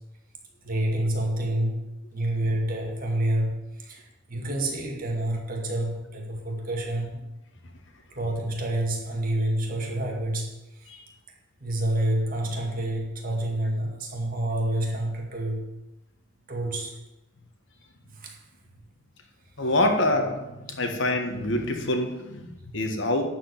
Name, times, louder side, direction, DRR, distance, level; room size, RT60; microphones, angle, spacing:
voice 1, 0.6-1.8 2.1-7.2 8.1-10.9 11.6-15.6 16.5-16.9 18.1-18.4, right 1 dB, 40° right, 0 dB, 2.2 m, -28 dB
voice 2, 19.6-23.3, left 1 dB, 60° left, 5 dB, 1.5 m, -26 dB
11.5 x 4.9 x 8.5 m, 0.98 s
head